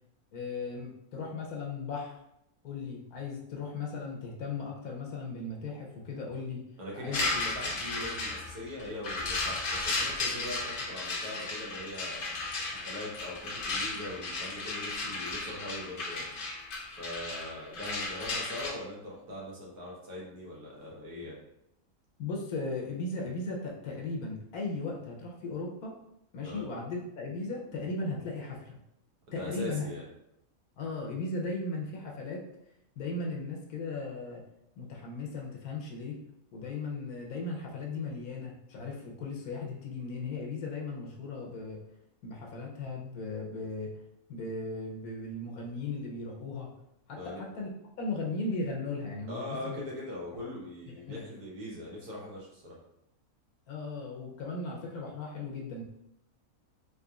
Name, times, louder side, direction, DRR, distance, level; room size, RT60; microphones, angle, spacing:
voice 1, 0.3-2.2 2.6-6.6 7.0-7.2 22.2-25.9 26.3-28.8 29.3-29.9 30.8-32.4 33.0-34.4 34.8-36.1 36.5-41.8 42.2-43.9 44.3-46.7 47.1-47.7 48.0-49.8 50.4-50.6 51.1-51.2 53.7-55.8, left 3 dB, 90° left, -1 dB, 1.2 m, -37 dB
voice 2, 6.8-12.3 12.8-16.3 17.0-21.4 26.4-26.6 29.3-30.1 47.1-47.4 49.3-52.8, left 1 dB, 90° right, -4 dB, 1.6 m, -41 dB
sound 1, 7.1-18.7, left 2 dB, 55° left, 0.6 m, -34 dB
3.9 x 3.0 x 2.4 m, 0.82 s
omnidirectional pair, 1.5 m